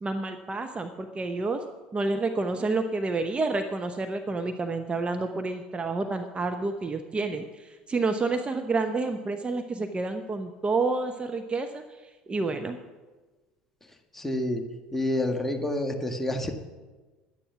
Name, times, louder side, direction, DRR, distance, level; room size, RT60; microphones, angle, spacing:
voice 1, 0.0-1.6 1.9-11.8 12.3-12.8, right 3 dB, 25° right, 6 dB, 0.9 m, -29 dB
voice 2, 14.1-14.6 14.9-16.5, left 1 dB, 5° left, 3 dB, 1.6 m, -28 dB
11.5 x 9.8 x 6.0 m, 1.3 s
figure-of-eight pair, 65°, 5 cm